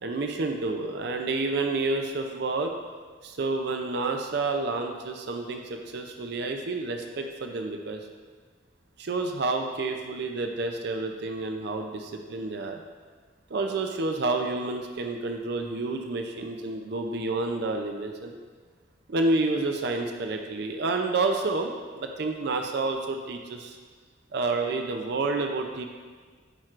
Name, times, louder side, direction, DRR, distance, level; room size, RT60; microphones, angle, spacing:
voice 1, 0.0-2.7 3.2-8.0 9.0-12.8 13.5-18.4 19.1-23.8 24.3-25.8, right 3 dB, 55° right, 4 dB, 0.5 m, -29 dB
8.8 x 4.5 x 2.5 m, 1.5 s
head